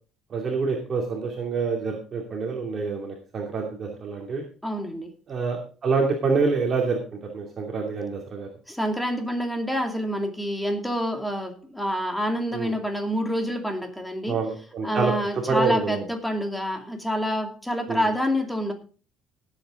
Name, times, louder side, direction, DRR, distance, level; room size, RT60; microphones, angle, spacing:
voice 1, 0.3-4.4 5.3-7.0 7.3-8.5 12.5-12.7 14.3-16.0 17.9-18.0, right 4 dB, 35° right, 0 dB, 2.6 m, -27 dB
voice 2, 4.6-5.1 8.7-14.4 14.8-18.7, equal, 5° left, 4 dB, 2.5 m, -27 dB
18.0 x 8.2 x 3.8 m, 0.37 s
cardioid pair, 135°, 0 cm